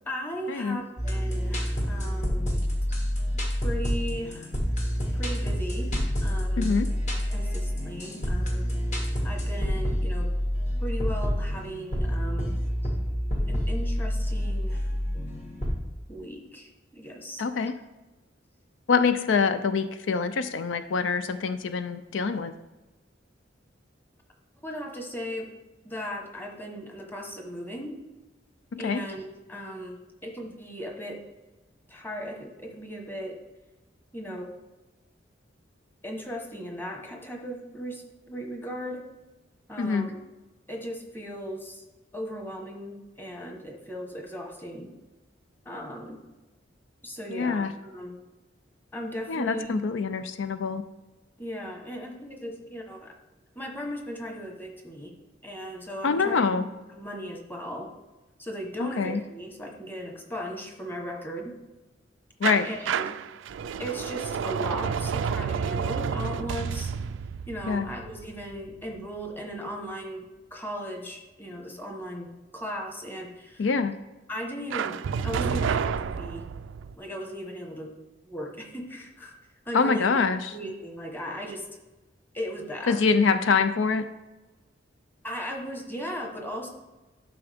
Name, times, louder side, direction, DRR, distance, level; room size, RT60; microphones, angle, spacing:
voice 1, 0.1-2.5 3.6-4.5 5.1-6.7 7.3-8.7 9.2-10.3 10.8-12.6 13.5-14.9 16.1-17.4 24.6-25.5 25.8-27.9 28.8-31.2 31.9-33.3 34.1-34.5 36.0-39.1 39.7-40.2 40.7-41.8 42.1-44.9 45.6-46.2 47.0-48.2 48.9-49.7 51.4-53.1 53.5-55.1 55.4-56.7 56.9-57.9 58.4-61.6 62.6-63.2 63.8-66.9 67.5-70.2 70.5-72.3 72.5-73.7 74.3-74.9 75.2-76.4 76.9-77.9 78.3-79.3 79.7-81.6 82.3-83.0 85.2-86.7, equal, 10° left, 2 dB, 1.2 m, -37 dB
sound 1, 1.0-15.8, equal, 40° left, 1.6 m, -28 dB
voice 2, 6.6-6.9 17.4-17.7 18.9-22.5 28.7-29.0 39.8-40.1 47.3-47.7 49.3-50.8 56.0-56.7 58.8-59.2 62.4-62.7 67.7-67.9 73.6-74.0 79.7-80.5 82.9-84.0, left 5 dB, 90° left, 11 dB, 0.4 m, -25 dB
sound 2, 62.4-69.2 74.7-76.9, right 6 dB, 85° right, 0.3 m, -30 dB
11.5 x 5.7 x 3.5 m, 1.1 s
head